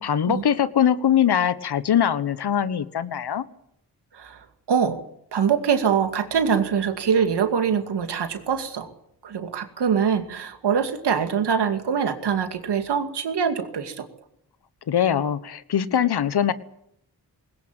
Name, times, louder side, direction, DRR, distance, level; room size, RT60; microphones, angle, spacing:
voice 1, 0.0-3.4 14.9-16.5, left 9 dB, 75° left, 15 dB, 1.3 m, -22 dB
voice 2, 4.1-5.0 5.3-8.9 9.2-14.1, right 7 dB, 85° right, 7 dB, 2.5 m, -24 dB
20.5 x 18.5 x 9.0 m, 0.72 s
cardioid pair, 45°, 39 cm